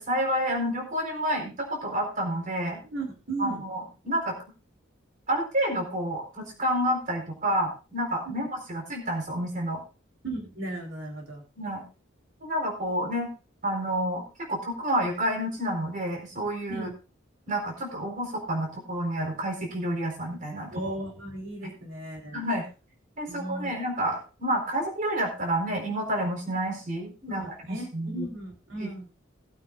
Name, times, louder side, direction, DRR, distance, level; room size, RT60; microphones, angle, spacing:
voice 1, 0.0-2.8 3.4-4.4 5.3-9.8 11.6-11.8 12.4-13.3 13.6-16.9 17.5-20.7 22.3-22.6 23.2-28.3 28.8-28.9, right 1 dB, 40° right, 1 dB, 4.2 m, -29 dB
voice 2, 2.8-3.6 8.3-8.4 10.2-11.4 16.7-16.9 20.7-22.4 23.3-23.7 27.3-29.1, right 2 dB, 80° right, -1 dB, 3.6 m, -36 dB
20.0 x 9.0 x 2.5 m, 0.32 s
head